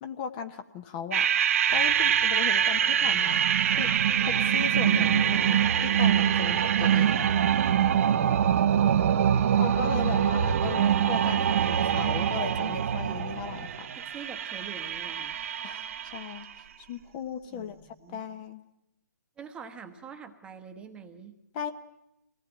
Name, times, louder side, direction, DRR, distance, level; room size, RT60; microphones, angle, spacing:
voice 1, 0.0-1.3 1.7-3.5 3.8-3.9 4.2-7.3 9.6-13.9 15.6-15.8 16.1-17.8 18.1-18.6 21.5-21.7, left 7 dB, 25° left, 9 dB, 1.0 m, -37 dB
sound 1, 1.1-16.4, right 9 dB, 45° right, 0.8 m, -24 dB
sound 2, 1.7-7.7, left 1 dB, 90° left, 3.1 m, -49 dB
voice 2, 13.9-15.4 17.5-18.2 19.4-21.4, right 6 dB, 10° right, 6 dB, 1.1 m, -45 dB
24.5 x 18.5 x 9.0 m, 0.84 s
figure-of-eight pair, 145°, 10 cm